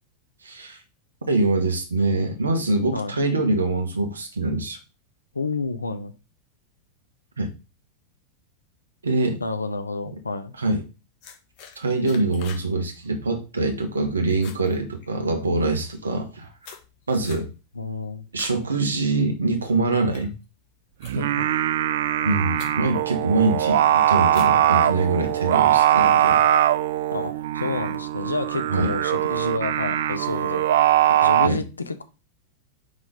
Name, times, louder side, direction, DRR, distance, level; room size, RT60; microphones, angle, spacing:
voice 1, 0.4-0.8 1.3-4.8 7.4-7.5 9.0-9.4 10.6-10.8 11.7-16.5 17.1-17.5 18.3-20.3 22.2-26.4 28.7-28.9 31.4-31.6, right 2 dB, 75° right, 5 dB, 1.3 m, -24 dB
voice 2, 5.3-6.1 9.4-10.5 17.7-18.3 21.1-21.5 27.1-30.6 31.1-32.0, left 3 dB, 80° left, 9 dB, 0.7 m, -29 dB
sound 1, 11.2-12.7 13.0-13.3 13.7-14.0 14.3-15.5 16.1-18.6 19.0-19.4 19.9-21.5 22.2-22.3 22.5-23.0 23.5-23.8 24.3-25.3, left 7 dB, 40° left, 1.3 m, -45 dB
Singing, 21.0-31.5, right 12 dB, 55° right, 0.3 m, -21 dB
5.2 x 3.8 x 5.3 m, 0.31 s
figure-of-eight pair, 90°, 0 cm